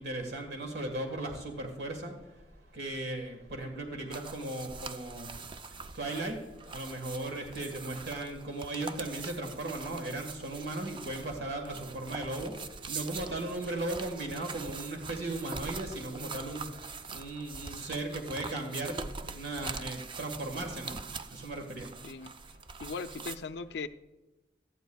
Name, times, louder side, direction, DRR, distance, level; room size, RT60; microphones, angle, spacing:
voice 1, 0.0-2.1 2.7-5.3 5.9-6.4 6.7-12.5 12.9-16.7 17.1-18.9 19.2-21.0 21.3-21.9, right 2 dB, 65° right, 3 dB, 1.5 m, -37 dB
sound 1, 4.1-23.4, right 4 dB, 25° right, 0.4 m, -43 dB
voice 2, 22.8-23.9, left 4 dB, 65° left, 11 dB, 0.5 m, -38 dB
17.5 x 12.5 x 2.3 m, 1.1 s
head